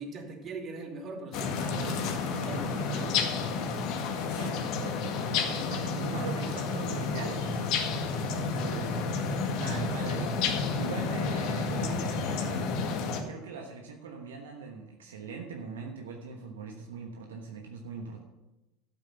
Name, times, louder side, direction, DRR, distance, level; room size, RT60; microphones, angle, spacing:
voice 1, 0.0-2.1 2.4-3.2, right 3 dB, 40° right, 2 dB, 2.7 m, -41 dB
sound 1, 1.3-13.2, left 4 dB, 60° left, 1.9 m, -30 dB
voice 2, 4.3-12.8 13.3-18.2, right 5 dB, 80° right, 2 dB, 1.3 m, -42 dB
12.5 x 8.3 x 5.8 m, 1.0 s
hypercardioid pair, 75°, 0 cm